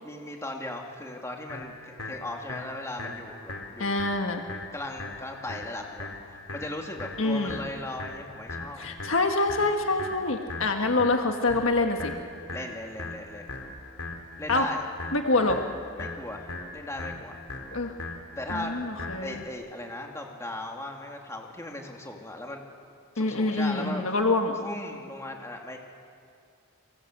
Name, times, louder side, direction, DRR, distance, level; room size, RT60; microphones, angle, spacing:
voice 1, 0.0-4.1 4.7-8.9 12.5-13.5 14.4-14.9 16.0-17.4 18.4-18.8 19.2-22.6 23.1-24.2 24.6-25.8, left 1 dB, 15° left, 1 dB, 2.8 m, -38 dB
sound 1, 1.5-19.5, left 2 dB, 90° left, 3.7 m, -40 dB
voice 2, 3.8-4.4 7.2-7.6 8.8-12.1 14.5-14.7 15.1-15.6 17.7-17.9 18.5-19.4 23.2-24.5, left 2 dB, 60° left, 4 dB, 1.6 m, -25 dB
30.0 x 24.0 x 8.2 m, 2.4 s
head